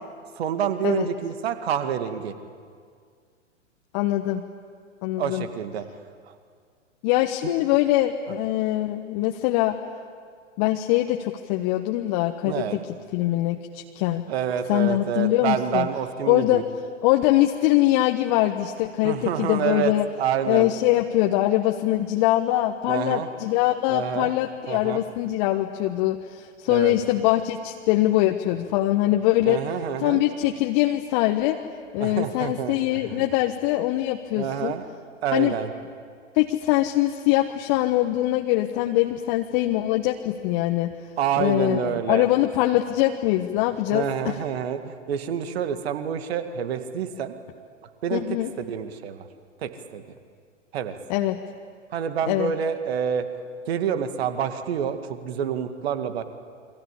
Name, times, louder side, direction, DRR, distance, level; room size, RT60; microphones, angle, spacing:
voice 1, 0.4-2.3 5.2-5.8 7.4-7.5 12.4-12.8 14.3-16.6 19.0-20.7 22.9-23.3 23.9-24.3 24.7-25.0 26.7-26.9 29.4-30.2 32.0-32.8 33.0-33.2 34.4-34.9 35.2-35.7 41.2-42.2 43.9-47.3 48.0-48.2 48.6-49.3 49.6-50.0 50.7-50.9 51.9-53.3 53.7-56.2, right 8 dB, 55° right, 9 dB, 2.2 m, -27 dB
voice 2, 3.9-4.4 5.0-5.4 7.0-9.8 10.6-12.8 13.1-14.2 14.7-15.9 16.3-16.6 17.0-20.1 20.5-29.6 30.0-31.6 31.9-34.7 35.3-35.5 36.3-40.9 41.4-44.4 48.1-48.5 51.1-51.4 52.3-52.5, left 15 dB, 35° left, 4 dB, 1.4 m, -23 dB
28.5 x 24.5 x 8.5 m, 2.1 s
figure-of-eight pair, 105°, 37 cm